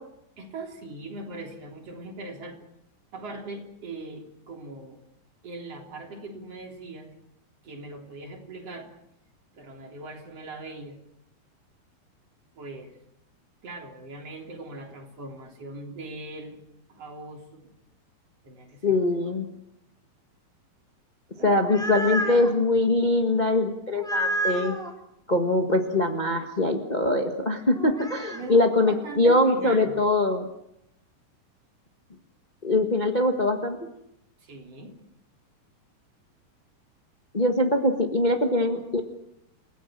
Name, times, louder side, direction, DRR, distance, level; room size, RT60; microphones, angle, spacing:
voice 1, 0.4-2.7 3.1-5.0 5.4-7.1 7.6-8.9 9.5-11.0 12.6-12.9 13.6-16.6 16.9-17.7 18.4-19.0 21.4-21.6 21.9-22.6 28.3-30.0 34.4-35.0, right 2 dB, 45° right, 2 dB, 4.3 m, -40 dB
voice 2, 18.8-19.5 21.4-24.8 25.3-30.5 32.6-33.8 37.3-39.0, left 2 dB, 55° left, 4 dB, 0.4 m, -23 dB
sound 1, 21.4-22.5 24.0-24.9 27.7-28.5, right 1 dB, ahead, 2.0 m, -30 dB
29.0 x 17.0 x 7.5 m, 0.80 s
omnidirectional pair, 3.9 m